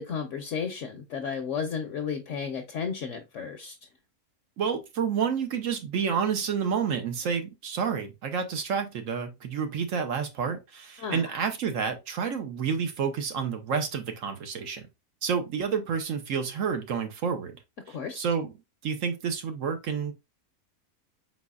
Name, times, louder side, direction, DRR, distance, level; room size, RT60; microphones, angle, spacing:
voice 1, 0.0-3.8 11.0-11.3 17.9-18.2, left 6 dB, 60° left, 1.0 m, -33 dB
voice 2, 4.6-14.9 15.2-17.6 18.2-18.5 18.8-20.1, right 6 dB, 65° right, 1.0 m, -29 dB
4.6 x 4.2 x 2.3 m
omnidirectional pair, 1.6 m